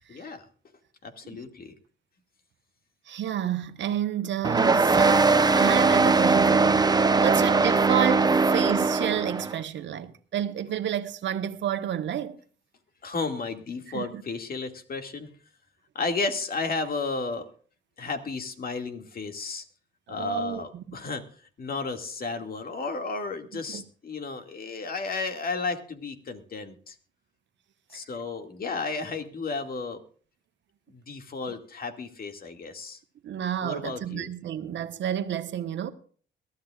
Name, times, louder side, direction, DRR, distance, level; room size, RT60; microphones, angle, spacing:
voice 1, 0.1-0.4 1.0-1.7 7.2-7.5 13.0-15.3 15.9-17.5 18.0-19.6 20.1-21.2 21.6-27.0 27.9-30.0 30.9-33.0 33.6-34.3, left 4 dB, 50° left, 2.3 m, -33 dB
voice 2, 3.1-12.4 13.9-14.2 20.1-21.0 23.7-23.8 33.2-35.9, right 10 dB, 65° right, 1.3 m, -30 dB
sound 1, 4.4-9.5, right 4 dB, 20° right, 0.8 m, -20 dB
22.5 x 13.0 x 2.5 m
cardioid pair, 90°, 20 cm